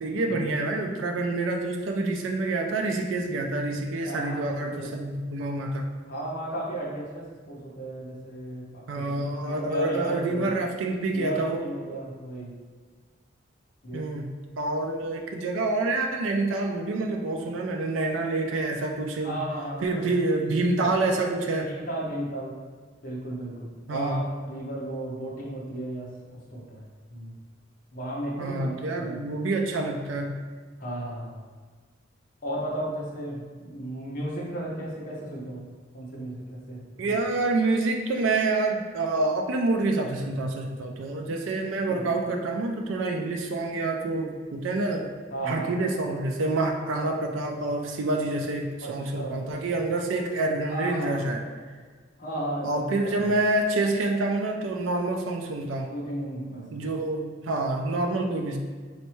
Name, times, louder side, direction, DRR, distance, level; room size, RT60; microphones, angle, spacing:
voice 1, 0.0-5.9 8.9-11.6 13.9-14.3 14.6-19.4 19.8-21.7 23.9-24.3 28.4-30.4 37.0-45.1 45.4-51.4 52.6-55.9 56.7-58.6, right 2 dB, 80° right, 2 dB, 0.4 m, -27 dB
voice 2, 4.0-4.9 6.0-10.5 11.1-12.5 13.8-14.1 19.2-20.1 20.8-20.9 21.6-22.6 23.0-26.1 26.5-26.8 27.1-27.3 27.9-29.3 30.8-31.4 32.4-35.6 35.9-37.1 41.8-42.0 45.3-45.7 48.8-49.4 50.7-51.2 52.2-53.3 55.9-56.8, right 1 dB, 45° left, -5 dB, 1.1 m, -35 dB
4.2 x 3.2 x 3.0 m, 1.5 s
head